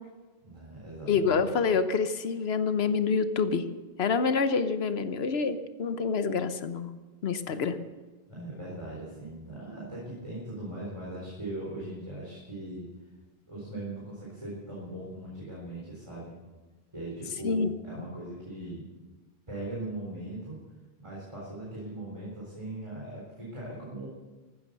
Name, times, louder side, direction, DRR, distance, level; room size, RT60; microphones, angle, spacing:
voice 1, 0.4-1.4 7.5-7.6 8.3-12.9 13.5-16.3 16.9-18.9 19.5-20.6 21.0-24.1, right 1 dB, 30° right, -5 dB, 4.1 m, -39 dB
voice 2, 1.1-3.6 4.0-6.9 7.2-7.8 17.4-17.7, left 5 dB, 85° left, 11 dB, 1.1 m, -27 dB
15.0 x 13.0 x 6.7 m, 1.2 s
omnidirectional pair, 1.0 m